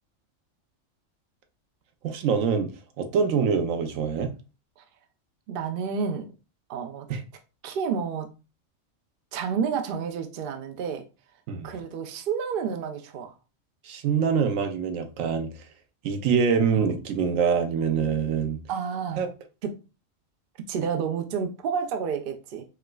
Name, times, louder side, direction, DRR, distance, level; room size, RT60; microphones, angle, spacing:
voice 1, 2.0-2.7 3.0-4.3 7.1-7.2 11.5-11.7 13.8-15.5 16.0-18.6 19.2-19.3, right 6 dB, 85° right, 1.0 m, -24 dB
voice 2, 5.5-6.3 6.7-7.1 7.6-8.3 9.3-11.0 11.6-13.3 18.7-19.2 19.6-19.7 20.7-22.6, right 6 dB, 60° right, 0.6 m, -30 dB
4.6 x 2.1 x 2.2 m
omnidirectional pair, 1.3 m